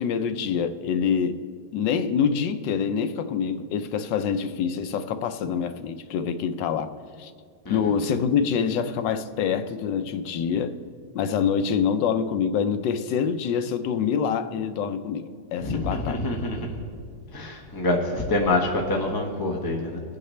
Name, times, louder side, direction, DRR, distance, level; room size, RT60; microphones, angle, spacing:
voice 1, 0.0-1.4 1.7-6.9 7.2-7.3 7.7-10.7 11.1-16.2, left 7 dB, 90° left, 9 dB, 1.3 m, -26 dB
voice 2, 15.6-16.7 17.3-20.0, left 2 dB, 15° left, -1 dB, 0.9 m, -26 dB
22.5 x 8.9 x 3.2 m, 2.1 s
omnidirectional pair, 1.9 m